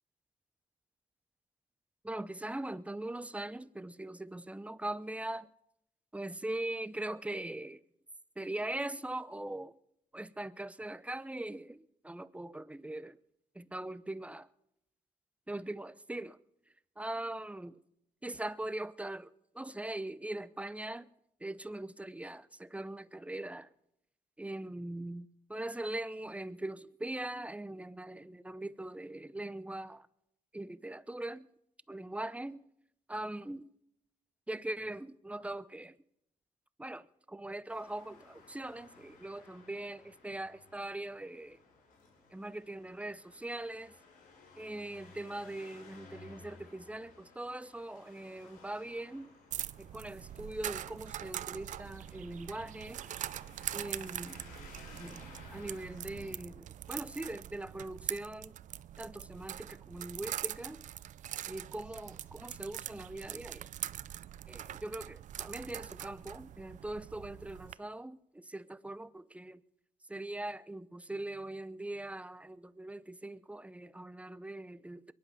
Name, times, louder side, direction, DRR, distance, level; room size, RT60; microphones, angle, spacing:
voice 1, 2.0-5.5 6.1-7.8 8.4-9.7 10.1-13.2 13.5-14.5 15.5-16.4 17.0-17.8 18.2-19.3 19.5-21.1 21.4-23.7 24.4-30.1 30.5-31.5 31.9-32.6 33.1-33.7 34.5-36.0 36.8-41.6 42.3-43.9 44.6-49.3 49.8-53.0 53.7-54.4 55.0-55.2 55.5-58.6 59.0-60.8 61.5-63.7 64.5-69.6 70.1-75.1, right 1 dB, 10° right, 0.6 m, -41 dB
Traffic noise roadway noise, 37.7-56.4, left 3 dB, 80° left, 5.2 m, -57 dB
sound 1, 49.5-67.7, right 11 dB, 65° right, 0.5 m, -43 dB
22.0 x 11.0 x 5.5 m
cardioid pair, 75°, 14 cm